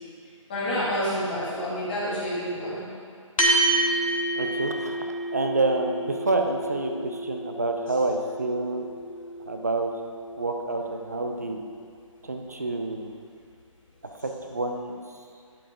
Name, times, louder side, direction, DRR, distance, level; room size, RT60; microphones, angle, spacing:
voice 1, 0.5-2.8 11.4-11.5, equal, 15° left, -10 dB, 1.8 m, -28 dB
sound 1, 3.4-12.1, right 2 dB, 90° left, 1.7 m, -30 dB
voice 2, 4.4-8.8 9.5-9.9 10.4-11.6 12.2-13.1 14.2-15.0, right 2 dB, 30° right, 3 dB, 0.5 m, -28 dB
11.5 x 4.6 x 4.8 m, 2.3 s
hypercardioid pair, 180°, 17 cm